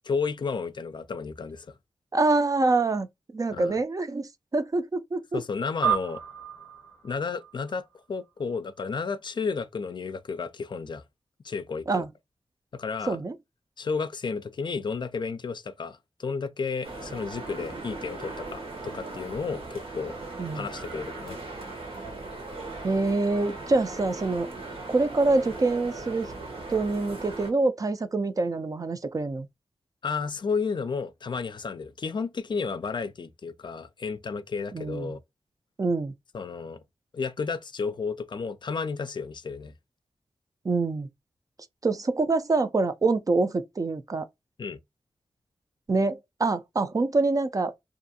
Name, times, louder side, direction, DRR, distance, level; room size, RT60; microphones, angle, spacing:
voice 1, 0.0-1.8 3.5-3.8 5.3-6.2 7.0-11.0 11.4-12.0 12.7-13.2 13.8-20.1 20.5-21.4 30.0-35.2 36.3-36.8 37.1-39.7 44.6-44.8, left 5 dB, 55° left, 0.4 m, -32 dB
voice 2, 2.1-3.1 3.3-5.4 11.9-12.1 13.1-13.3 20.4-20.7 22.8-24.5 24.9-26.3 26.7-29.5 34.7-35.2 35.8-36.1 40.6-41.1 41.8-44.3 45.9-47.7, right 3 dB, 40° right, 0.4 m, -25 dB
sound 1, 5.8-8.6, right 8 dB, 20° left, 0.8 m, -32 dB
sound 2, 16.8-27.5, right 2 dB, 75° right, 1.0 m, -38 dB
2.5 x 2.3 x 2.7 m
cardioid pair, 50°, 10 cm